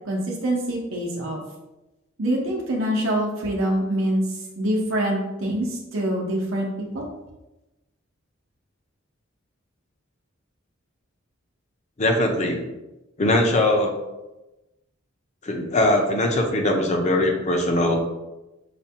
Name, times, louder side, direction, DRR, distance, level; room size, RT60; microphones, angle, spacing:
voice 1, 0.1-1.4 2.2-7.1, right 1 dB, 75° right, -2 dB, 0.8 m, -25 dB
voice 2, 12.0-12.7 13.2-13.9 15.4-18.1, left 1 dB, 35° left, 3 dB, 0.6 m, -21 dB
5.8 x 2.2 x 2.7 m, 1.0 s
head